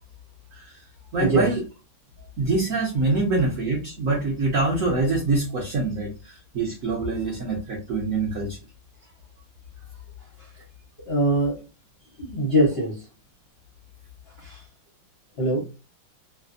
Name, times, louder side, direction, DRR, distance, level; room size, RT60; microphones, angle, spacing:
voice 1, 1.1-1.6 2.4-8.6, right 3 dB, 65° right, 0.8 m, -25 dB
voice 2, 11.1-11.6 12.2-13.0 14.4-14.6 15.4-15.6, right 1 dB, 50° left, 0.7 m, -22 dB
3.2 x 2.1 x 2.5 m
omnidirectional pair, 2.2 m